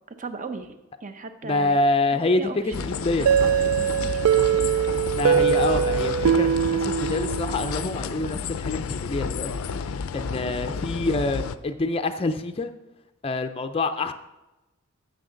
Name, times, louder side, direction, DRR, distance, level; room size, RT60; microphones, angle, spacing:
voice 1, 0.1-0.7 1.0-1.8 2.4-4.2, right 4 dB, 40° right, 8 dB, 0.8 m, -37 dB
voice 2, 1.4-2.5 2.9-3.3 5.1-12.7 13.2-14.1, left 2 dB, 25° left, 8 dB, 0.5 m, -26 dB
sound 1, 2.7-11.6, left 5 dB, 80° left, 0.5 m, -31 dB
sound 2, 3.3-7.9, right 8 dB, 80° right, 0.3 m, -22 dB
14.5 x 6.5 x 3.9 m, 1.0 s
head